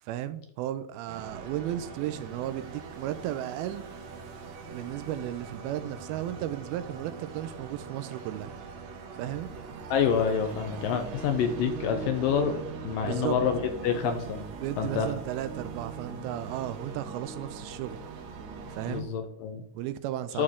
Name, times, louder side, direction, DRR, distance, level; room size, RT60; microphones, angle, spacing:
voice 1, 0.0-3.8 4.7-8.5 9.2-9.5 13.0-13.4 14.6-18.0 18.7-19.1 19.7-20.4, right 12 dB, 85° right, 2.3 m, -34 dB
sound 1, 1.1-19.0, right 5 dB, 65° right, 1.9 m, -41 dB
voice 2, 9.9-12.6 12.8-14.4 14.8-15.1 18.9-19.6 20.3-20.4, left 7 dB, 75° left, 2.2 m, -27 dB
11.5 x 6.4 x 3.7 m
omnidirectional pair, 4.5 m